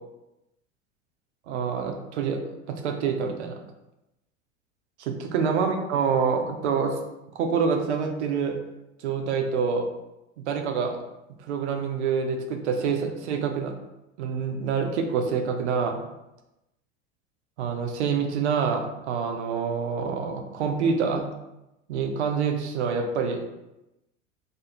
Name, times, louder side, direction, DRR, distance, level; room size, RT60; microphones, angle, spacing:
voice 1, 1.5-2.4 2.7-3.6 5.0-7.0 7.3-8.6 9.0-9.9 10.5-11.0 11.4-13.7 14.2-16.0 17.6-21.3 21.9-23.5, right 6 dB, 60° right, 4 dB, 0.5 m, -26 dB
2.4 x 2.0 x 3.0 m, 0.94 s
figure-of-eight pair, 80°, 38 cm